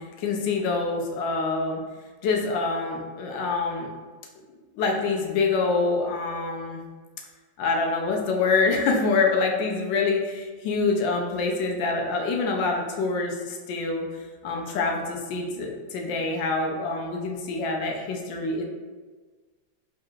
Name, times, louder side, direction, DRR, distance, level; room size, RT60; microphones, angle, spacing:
voice 1, 0.0-1.8 2.2-3.9 4.8-6.8 7.6-14.1 14.4-18.6, left 3 dB, 90° left, 1 dB, 1.3 m, -26 dB
3.7 x 2.4 x 4.4 m, 1.4 s
omnidirectional pair, 1.9 m